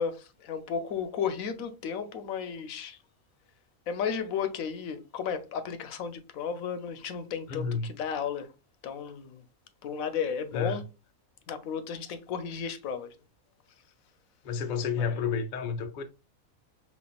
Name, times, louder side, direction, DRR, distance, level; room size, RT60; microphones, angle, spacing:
voice 1, 0.0-3.0 3.9-8.5 8.8-9.4 9.8-10.8 11.5-13.1 15.0-15.1, left 7 dB, 75° left, 1.0 m, -34 dB
voice 2, 7.5-7.9 10.5-10.8 14.4-16.0, left 5 dB, 55° left, 0.5 m, -30 dB
5.2 x 2.7 x 2.3 m
omnidirectional pair, 1.5 m